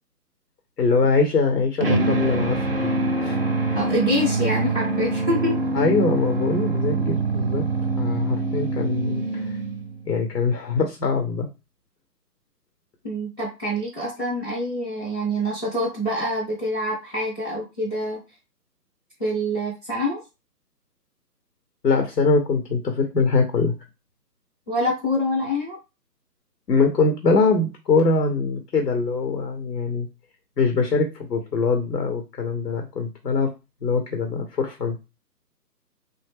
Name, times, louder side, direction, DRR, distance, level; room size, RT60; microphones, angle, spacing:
voice 1, 0.8-2.9 3.2-3.8 5.7-7.7 8.0-9.6 10.1-11.5 21.8-23.8 26.7-30.1 30.6-33.5 33.8-35.0, left 4 dB, 80° left, 4 dB, 0.9 m, -23 dB
sound 1, 1.8-10.1, right 3 dB, 40° right, 0.4 m, -24 dB
voice 2, 3.7-5.6 13.0-18.2 19.2-20.2 24.7-25.8, left 1 dB, 15° left, -7 dB, 0.6 m, -26 dB
3.3 x 2.0 x 3.4 m, 0.27 s
figure-of-eight pair, 145°, 50 cm